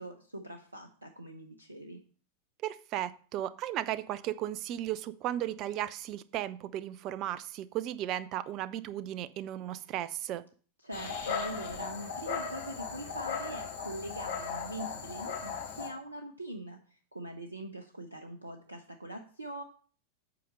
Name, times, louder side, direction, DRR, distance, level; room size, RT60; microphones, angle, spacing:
voice 1, 0.0-2.0 10.8-19.6, right 1 dB, 80° right, 4 dB, 0.7 m, -43 dB
voice 2, 2.6-10.4, right 12 dB, 40° right, 16 dB, 0.5 m, -35 dB
Dog, 10.9-15.9, left 6 dB, 70° left, 3.3 m, -37 dB
8.4 x 5.0 x 5.4 m, 0.43 s
figure-of-eight pair, 90°, 0 cm